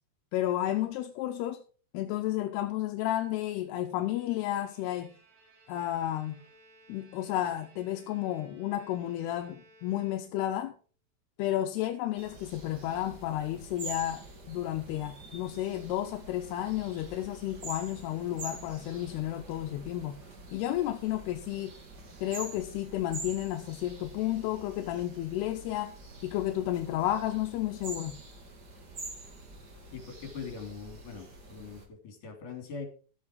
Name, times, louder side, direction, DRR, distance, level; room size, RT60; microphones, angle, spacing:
voice 1, 0.3-1.6 1.9-5.1 5.7-6.3 6.9-10.7 11.4-20.2 20.5-21.8 22.2-25.9 26.2-28.2, left 13 dB, 85° left, 2.8 m, -32 dB
Bowed string instrument, 3.7-10.7, right 1 dB, 75° right, 5.7 m, -60 dB
sound 1, 12.2-31.9, right 2 dB, 35° right, 1.8 m, -46 dB
voice 2, 29.9-32.9, left 5 dB, 55° left, 4.5 m, -42 dB
13.5 x 8.6 x 4.5 m
omnidirectional pair, 4.6 m